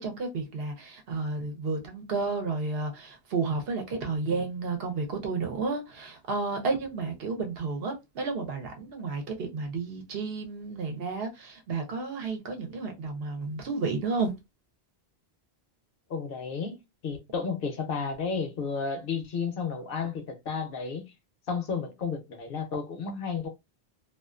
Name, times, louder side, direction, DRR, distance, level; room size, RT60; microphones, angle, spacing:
voice 1, 0.0-14.3, right 4 dB, 70° right, 0.9 m, -32 dB
voice 2, 16.1-21.0 21.5-23.5, left 5 dB, 65° left, 0.8 m, -32 dB
2.4 x 2.4 x 2.3 m
omnidirectional pair, 1.0 m